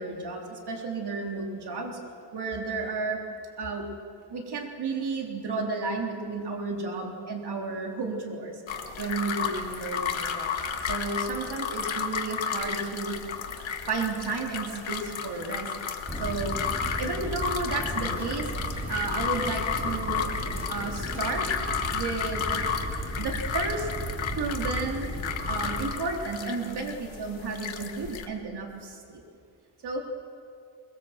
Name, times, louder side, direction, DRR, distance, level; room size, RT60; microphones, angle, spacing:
voice 1, 0.0-2.0 2.3-3.2 3.6-3.9 4.3-8.6 9.0-10.5 10.9-13.2 13.9-15.7 16.2-16.6 17.0-18.5 18.9-20.2 20.7-21.5 21.9-22.6 23.2-23.9 24.4-25.1 25.5-29.2 29.8-30.0, right 3 dB, 60° right, 1 dB, 3.8 m, -32 dB
sound 1, 8.7-28.3, left 6 dB, 85° left, 1.9 m, -33 dB
sound 2, 16.1-25.8, right 1 dB, 5° right, 6.5 m, -35 dB
23.5 x 23.5 x 7.6 m, 2.4 s
wide cardioid pair, 165°, 45 cm